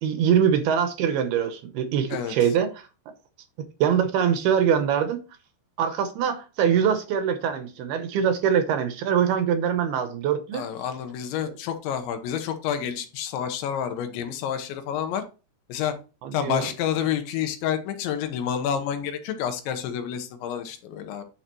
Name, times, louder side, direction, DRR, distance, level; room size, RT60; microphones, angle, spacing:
voice 1, 0.0-2.7 3.8-5.2 5.8-10.6 16.2-16.7, right 8 dB, 75° right, 2.5 m, -23 dB
voice 2, 2.1-2.5 10.5-15.2 15.7-16.0 16.3-21.2, left 9 dB, 80° left, 3.4 m, -29 dB
9.7 x 6.8 x 3.0 m
omnidirectional pair, 5.2 m